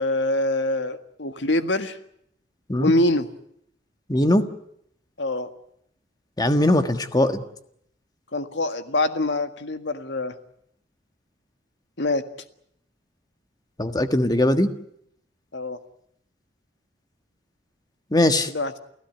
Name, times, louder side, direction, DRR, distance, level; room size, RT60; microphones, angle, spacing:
voice 1, 0.0-2.0 2.8-3.3 5.2-5.5 8.3-10.4 12.0-12.2 15.5-15.8 18.5-18.8, left 2 dB, 85° left, 8 dB, 1.7 m, -24 dB
voice 2, 4.1-4.5 6.4-7.4 13.8-14.7 18.1-18.5, left 1 dB, 20° left, 8 dB, 1.5 m, -20 dB
29.0 x 16.0 x 9.2 m, 0.73 s
head